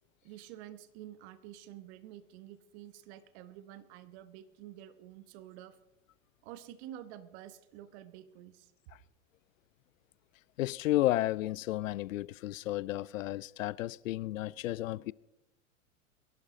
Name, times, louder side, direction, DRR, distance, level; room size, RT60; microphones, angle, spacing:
voice 1, 0.2-5.8 6.4-8.7, right 12 dB, 55° right, 1.2 m, -49 dB
voice 2, 10.6-15.1, left 15 dB, 75° left, 0.5 m, -32 dB
22.0 x 11.5 x 3.9 m
hypercardioid pair, 95°, 40 cm